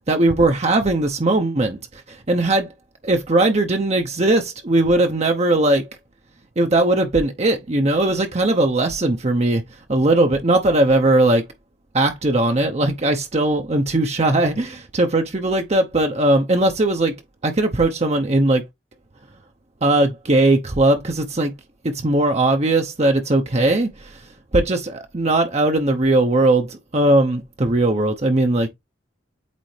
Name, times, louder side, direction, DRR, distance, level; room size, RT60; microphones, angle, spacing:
voice 1, 0.1-2.7 3.1-5.8 6.6-9.6 9.9-11.4 11.9-17.2 17.4-18.7 19.8-21.5 21.8-24.2 24.5-28.7, right 2 dB, 35° right, 0.8 m, -19 dB
8.4 x 3.4 x 3.3 m
head